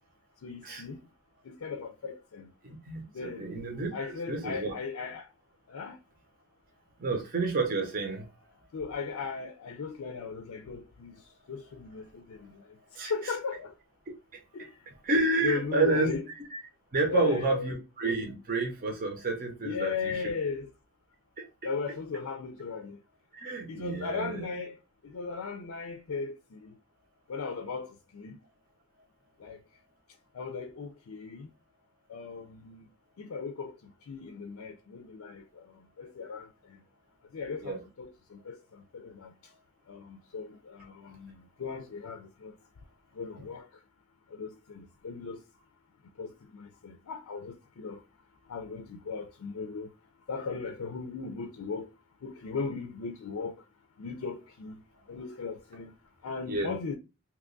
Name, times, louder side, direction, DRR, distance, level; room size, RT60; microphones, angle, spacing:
voice 1, 0.4-1.0 1.4-2.5 3.1-3.5 3.9-5.3 5.7-6.0 8.7-11.2 11.5-12.6 12.9-13.7 14.5-14.7 15.4-16.2 17.1-17.8 19.6-20.7 21.6-23.0 23.7-24.8 25.0-26.7 27.3-28.4 29.4-29.6 30.3-31.5 32.1-32.9 33.2-36.8 37.3-39.3 39.9-42.5 43.1-43.7 44.3-45.4 46.2-48.0 48.5-49.9 50.3-51.9 52.2-53.5 54.0-54.7 55.1-55.9 56.2-57.0, left 4 dB, 70° left, 0.4 m, -37 dB
voice 2, 2.6-3.0 3.4-4.7 7.0-8.3 12.9-13.1 15.0-16.1 16.5-16.6 16.9-20.3 23.3-24.4 37.6-37.8 56.5-56.7, right 3 dB, 40° right, 0.7 m, -29 dB
2.9 x 2.3 x 3.7 m
head